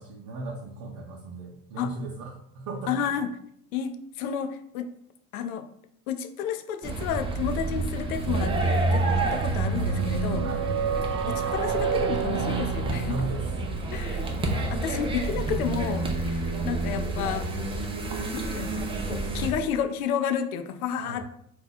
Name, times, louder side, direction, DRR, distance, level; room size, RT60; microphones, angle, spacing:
voice 1, 0.0-2.9 10.4-10.7 13.1-13.5 14.8-14.9 21.0-21.2, right 2 dB, 45° right, -2 dB, 0.7 m, -36 dB
voice 2, 2.9-3.3 3.7-4.9 5.3-5.7 6.1-10.5 11.3-13.2 13.9-14.3 14.7-17.5 18.3-21.2, left 8 dB, 75° left, 8 dB, 0.5 m, -31 dB
sound 1, 6.8-19.5, right 2 dB, 15° right, 0.5 m, -29 dB
sound 2, 8.3-13.7, right 8 dB, 85° right, 0.5 m, -31 dB
2.9 x 2.3 x 4.0 m, 0.70 s
hypercardioid pair, 85°, 43 cm